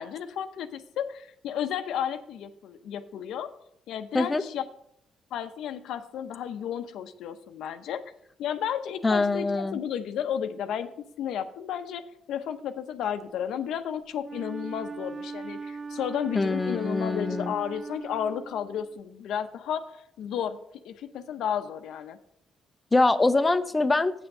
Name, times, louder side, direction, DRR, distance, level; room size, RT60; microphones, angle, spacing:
voice 1, 0.0-3.5 3.9-4.7 5.3-8.0 8.4-10.9 11.2-20.6 20.8-22.2, left 9 dB, 80° left, 9 dB, 0.7 m, -33 dB
voice 2, 9.0-9.8 16.4-17.5 22.9-24.1, left 3 dB, 20° left, 9 dB, 0.6 m, -24 dB
Wind instrument woodwind instrument, 14.2-19.0, right 4 dB, 35° right, 0.3 m, -39 dB
8.3 x 6.1 x 6.6 m, 0.73 s
cardioid pair, 90°, 0 cm